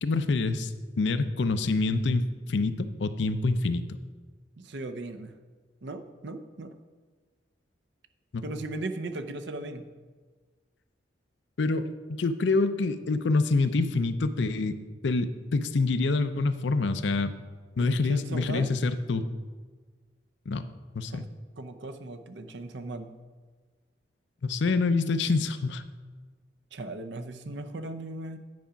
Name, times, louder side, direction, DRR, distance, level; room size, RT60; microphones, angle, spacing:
voice 1, 0.0-4.0 8.3-8.4 11.6-11.9 12.2-14.8 15.0-17.3 17.8-19.3 20.5-20.6 20.9-21.3 24.4-25.8, left 3 dB, 75° left, 11 dB, 0.5 m, -26 dB
voice 2, 4.6-5.3 5.8-6.7 8.4-9.8 17.8-18.7 21.1-21.2 21.6-23.1 26.7-28.4, right 2 dB, 70° right, 8 dB, 0.6 m, -37 dB
9.5 x 4.9 x 5.7 m, 1.4 s
head